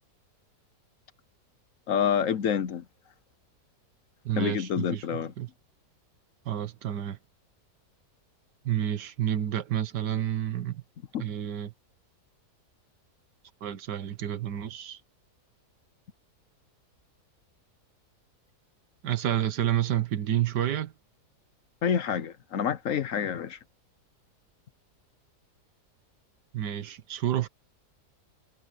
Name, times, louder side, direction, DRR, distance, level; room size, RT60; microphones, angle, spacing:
voice 1, 1.9-2.8 4.4-5.3 11.1-11.2 21.8-23.6, left 8 dB, 60° left, 1.1 m, -28 dB
voice 2, 4.2-5.5 6.4-7.2 8.6-10.8 11.2-11.7 13.6-15.0 19.0-20.9 26.5-27.5, right 11 dB, 90° right, 1.7 m, -29 dB
omnidirectional pair, 1.7 m